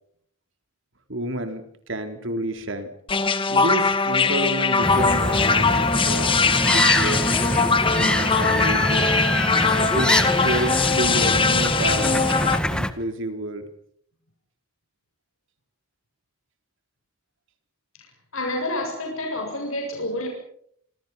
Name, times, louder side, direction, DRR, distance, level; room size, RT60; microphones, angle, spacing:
voice 1, 1.1-2.9 3.5-9.2 9.9-13.7, right 1 dB, 60° right, 7 dB, 4.0 m, -30 dB
sound 1, 3.1-12.6, left 4 dB, 25° left, 1.7 m, -21 dB
sound 2, 4.8-12.9, left 1 dB, 5° left, 1.6 m, -24 dB
voice 2, 18.3-20.3, left 1 dB, 75° left, 1 dB, 7.5 m, -28 dB
28.5 x 26.5 x 5.8 m, 0.68 s
head